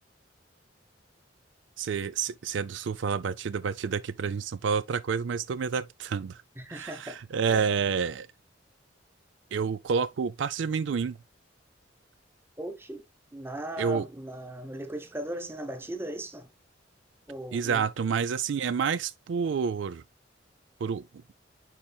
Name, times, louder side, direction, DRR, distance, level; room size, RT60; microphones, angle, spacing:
voice 1, 1.8-6.4 6.7-8.3 9.5-11.2 13.8-14.1 17.5-20.0 20.8-21.1, right 6 dB, 75° right, 0.4 m, -29 dB
voice 2, 6.6-7.2 7.4-7.7 12.6-13.0 13.3-16.5 17.3-17.8, right 1 dB, 10° right, 1.0 m, -38 dB
9.8 x 4.4 x 2.3 m
head